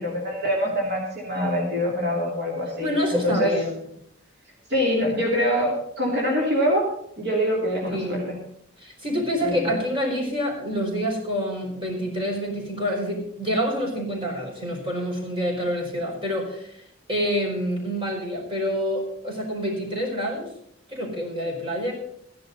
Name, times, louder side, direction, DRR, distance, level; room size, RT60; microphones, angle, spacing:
voice 1, 0.0-3.5 4.7-6.9 7.2-8.4 9.4-9.8, equal, 60° right, -3 dB, 2.9 m, -24 dB
voice 2, 2.8-3.8 7.9-8.2 8.8-16.8 17.1-20.5 20.9-21.9, equal, 25° right, -1 dB, 4.8 m, -27 dB
16.0 x 11.0 x 4.1 m, 0.70 s
head